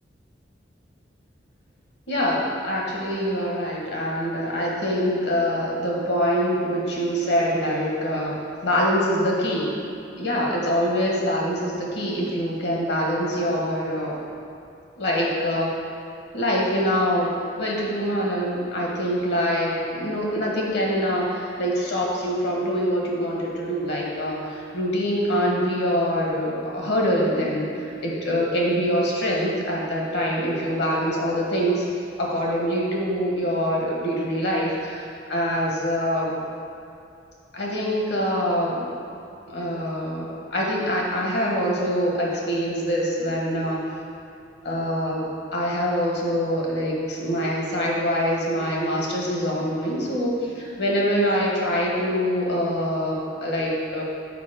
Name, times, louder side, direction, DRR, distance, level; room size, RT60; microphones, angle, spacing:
voice 1, 2.1-9.7 10.1-14.2 15.0-15.7 16.3-31.8 32.2-36.3 37.5-38.8 39.5-43.8 44.6-45.2 45.5-54.0, equal, 65° left, -3 dB, 1.4 m, -24 dB
6.8 x 4.6 x 5.1 m, 2.7 s
head